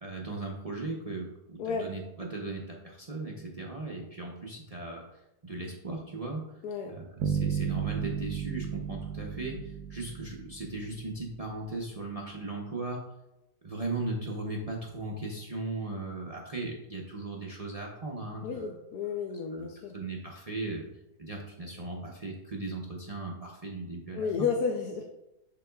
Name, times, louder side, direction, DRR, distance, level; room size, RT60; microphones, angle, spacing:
voice 1, 0.0-5.0 5.4-6.6 6.9-13.1 13.6-18.7 19.5-19.7 19.9-20.9 21.2-24.5, right 2 dB, 60° right, -2 dB, 0.4 m, -37 dB
sound 1, 7.2-11.2, right 7 dB, 75° right, 1.1 m, -33 dB
voice 2, 18.4-19.9 24.1-25.0, left 5 dB, 75° left, 2 dB, 1.1 m, -32 dB
11.0 x 3.8 x 2.3 m, 0.91 s
omnidirectional pair, 1.7 m